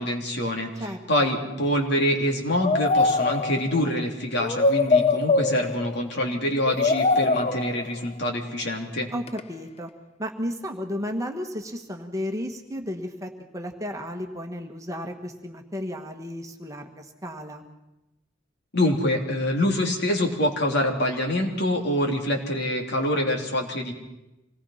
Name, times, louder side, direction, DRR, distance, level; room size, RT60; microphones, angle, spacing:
voice 1, 0.0-9.1 18.7-23.9, left 1 dB, 60° left, 1 dB, 3.2 m, -25 dB
sound 1, 2.6-3.8 4.4-6.1 6.7-7.9 9.3-9.4, left 3 dB, 30° left, 0.7 m, -23 dB
voice 2, 9.1-9.9 10.2-17.7, equal, 15° right, 3 dB, 1.5 m, -33 dB
26.0 x 19.0 x 5.8 m, 0.96 s
head